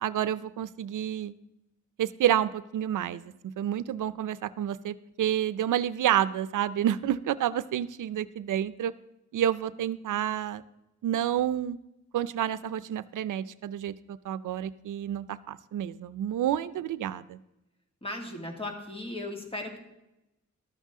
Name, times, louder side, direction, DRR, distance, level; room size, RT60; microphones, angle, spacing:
voice 1, 0.0-1.3 2.0-8.9 9.3-10.6 11.0-11.8 12.1-17.4, right 11 dB, 90° right, 15 dB, 0.5 m, -29 dB
voice 2, 18.0-19.8, left 2 dB, 20° left, 2 dB, 2.2 m, -36 dB
13.5 x 12.5 x 3.7 m, 0.92 s
wide cardioid pair, 155°, 30 cm